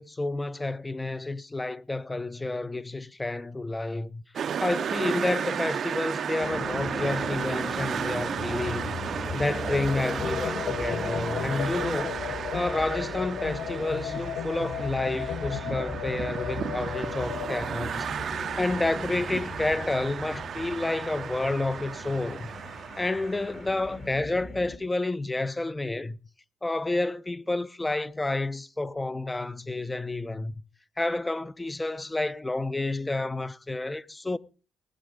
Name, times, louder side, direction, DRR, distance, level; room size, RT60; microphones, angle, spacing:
voice 1, 0.0-4.2 4.6-9.0 9.3-12.2 12.5-22.5 23.0-26.2 26.6-30.5 31.0-34.4, left 2 dB, 15° left, 0.7 m, -30 dB
sound 1, 4.4-23.9, right 8 dB, 55° right, 0.7 m, -34 dB
sound 2, 6.4-24.8, left 3 dB, 40° left, 2.2 m, -39 dB
sound 3, 10.2-17.6, left 10 dB, 90° left, 0.7 m, -35 dB
19.0 x 8.6 x 5.2 m
cardioid pair, 90°, 0 cm